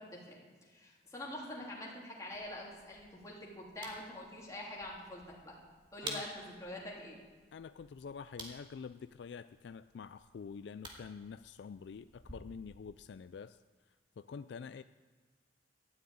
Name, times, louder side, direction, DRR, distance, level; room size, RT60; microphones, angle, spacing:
voice 1, 0.0-5.5 5.9-7.2, left 1 dB, 15° left, -4 dB, 3.3 m, -45 dB
sound 1, 2.3-12.4, right 1 dB, 25° right, 2.4 m, -52 dB
voice 2, 7.5-13.6 14.2-14.8, left 6 dB, 65° left, 13 dB, 0.3 m, -47 dB
13.0 x 9.4 x 9.2 m, 1.5 s
head